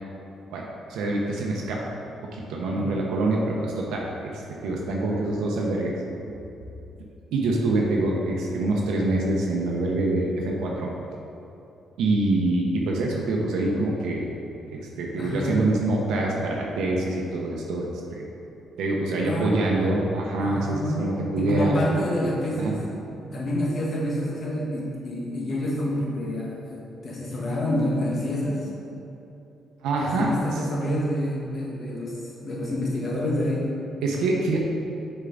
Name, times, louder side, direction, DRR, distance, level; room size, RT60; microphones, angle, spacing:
voice 1, 0.5-1.9 2.3-5.9 6.2-6.3 7.3-10.9 12.0-14.2 14.7-18.2 18.8-21.8 22.6-22.7 29.8-30.6 34.0-34.6, right 2 dB, 85° right, -2 dB, 0.7 m, -25 dB
voice 2, 15.1-15.6 19.2-19.8 20.3-21.1 21.4-22.8 23.2-28.7 30.0-32.1 32.4-33.7, equal, 50° left, -4 dB, 1.5 m, -28 dB
6.7 x 4.5 x 3.8 m, 2.8 s
cardioid pair, 90°, 0 cm